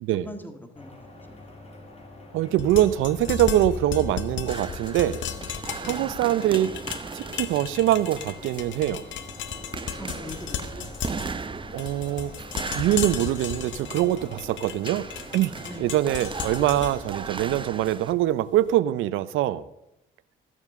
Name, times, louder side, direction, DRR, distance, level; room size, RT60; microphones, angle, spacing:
voice 1, 0.1-1.4 5.8-6.1 10.0-10.9 15.7-15.9, left 1 dB, 10° left, 6 dB, 1.7 m, -42 dB
sound 1, 0.8-17.7, left 1 dB, 30° left, 2.9 m, -46 dB
voice 2, 2.3-5.2 5.8-6.7 7.1-9.0 11.7-12.3 12.7-15.1 15.3-15.5 15.8-19.6, right 13 dB, 90° right, 17 dB, 0.6 m, -23 dB
sound 2, 2.5-18.6, left 8 dB, 70° left, 0.9 m, -35 dB
sound 3, 4.5-18.1, right 5 dB, 25° right, 0.7 m, -38 dB
14.5 x 7.3 x 6.7 m, 0.88 s
cardioid pair, 90°, 20 cm